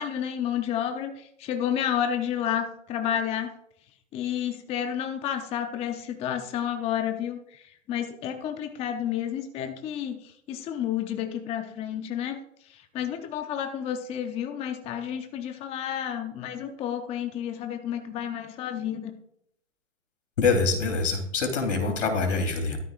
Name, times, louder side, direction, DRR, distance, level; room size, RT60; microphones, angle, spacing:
voice 1, 0.0-3.5 4.1-12.4 12.6-19.1, left 9 dB, 15° left, 6 dB, 0.7 m, -31 dB
voice 2, 20.4-22.8, left 4 dB, 65° left, 4 dB, 3.6 m, -25 dB
14.5 x 13.0 x 2.5 m, 0.73 s
hypercardioid pair, 130°, 39 cm